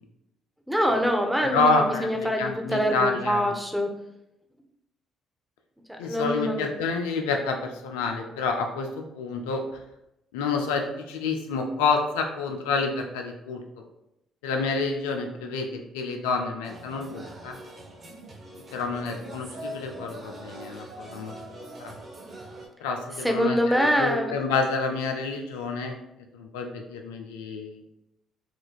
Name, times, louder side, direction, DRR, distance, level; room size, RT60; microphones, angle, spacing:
voice 1, 0.7-3.9 5.9-6.7 23.2-24.3, equal, 5° right, 2 dB, 0.7 m, -25 dB
voice 2, 1.4-3.5 6.0-9.6 10.3-13.6 14.4-17.6 18.7-21.3 21.8-22.0 22.8-26.0 26.3-27.8, left 4 dB, 80° left, 4 dB, 0.4 m, -28 dB
sound 1, 16.6-22.7, right 1 dB, 45° right, 0.8 m, -42 dB
4.4 x 2.5 x 2.3 m, 0.86 s
hypercardioid pair, 50°, 0 cm